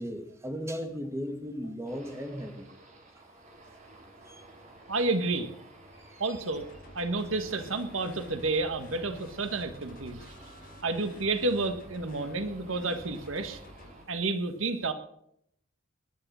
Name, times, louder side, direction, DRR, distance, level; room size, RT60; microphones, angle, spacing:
voice 1, 0.0-2.7 4.3-4.4 6.0-6.2, equal, 15° right, 5 dB, 2.2 m, -36 dB
sound 1, 1.9-14.1, right 1 dB, 40° right, 4.1 m, -53 dB
voice 2, 4.9-5.5 6.2-6.7 6.9-10.3 10.8-13.6 14.1-14.9, right 3 dB, 75° right, 8 dB, 1.5 m, -30 dB
sound 2, 6.5-13.9, left 1 dB, 45° left, 4.2 m, -52 dB
20.5 x 11.0 x 6.2 m, 0.74 s
head